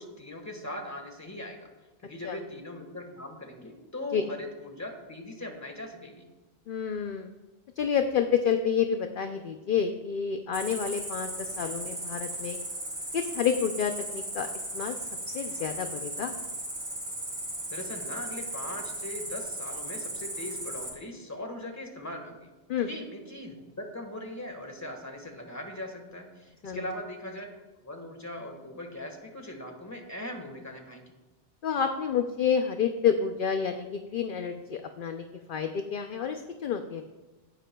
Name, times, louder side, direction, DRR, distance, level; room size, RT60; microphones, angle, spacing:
voice 1, 0.0-1.7 2.0-6.3 17.7-22.5 22.8-27.5 27.8-31.2, left 1 dB, 15° left, 3 dB, 1.5 m, -40 dB
voice 2, 6.7-7.3 7.8-12.6 13.1-14.5 14.7-14.9 15.3-16.4 22.7-22.9 26.6-26.9 31.6-37.1, left 7 dB, 55° left, 6 dB, 0.7 m, -29 dB
Cricket, 10.5-20.9, right 1 dB, 55° right, 2.9 m, -36 dB
17.0 x 10.0 x 2.3 m, 1.1 s
omnidirectional pair, 1.2 m